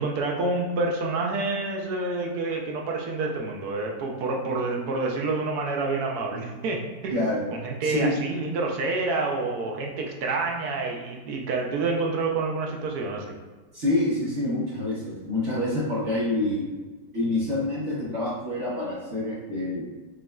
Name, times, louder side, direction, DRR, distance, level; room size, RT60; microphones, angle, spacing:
voice 1, 0.0-7.2 7.5-13.3, right 3 dB, 70° right, 0 dB, 1.0 m, -28 dB
voice 2, 7.1-7.4 7.8-8.1 13.7-16.7 17.1-19.8, left 1 dB, 50° right, -7 dB, 1.0 m, -27 dB
5.9 x 2.5 x 2.2 m, 1.3 s
omnidirectional pair, 1.9 m